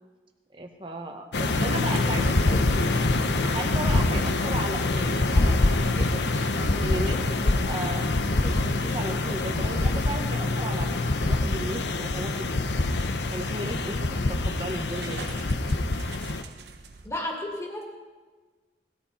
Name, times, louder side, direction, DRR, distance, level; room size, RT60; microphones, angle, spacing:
voice 1, 0.5-3.0 3.5-6.2 6.8-8.1 8.3-12.6 13.3-15.2, right 1 dB, 30° right, 3 dB, 1.3 m, -35 dB
sound 1, 1.3-16.4, left 2 dB, 85° left, 0.9 m, -25 dB
sound 2, 1.4-1.7 2.9-3.7 4.8-5.3 6.0-6.6 7.7-7.8 8.5-8.9, left 2 dB, 35° left, 2.8 m, -46 dB
sound 3, 8.9-17.1, right 4 dB, 80° right, 1.3 m, -48 dB
voice 2, 17.0-17.8, left 1 dB, 15° left, 0 dB, 2.4 m, -32 dB
19.5 x 14.0 x 4.3 m, 1.4 s
head